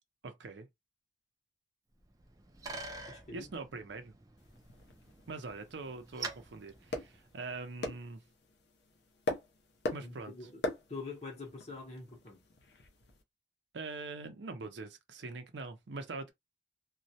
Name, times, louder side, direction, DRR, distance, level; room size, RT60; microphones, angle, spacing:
voice 1, 0.2-0.7 3.3-4.1 5.3-8.2 9.9-10.3 13.7-16.3, right 3 dB, 80° right, 0.6 m, -43 dB
Bicycle, 2.0-7.7, right 3 dB, 20° right, 0.4 m, -47 dB
voice 2, 3.1-3.5 10.0-10.6 10.9-12.4, left 3 dB, 35° left, 0.8 m, -45 dB
sound 1, 4.4-13.2, left 2 dB, 70° left, 0.6 m, -42 dB
2.3 x 2.0 x 2.7 m
head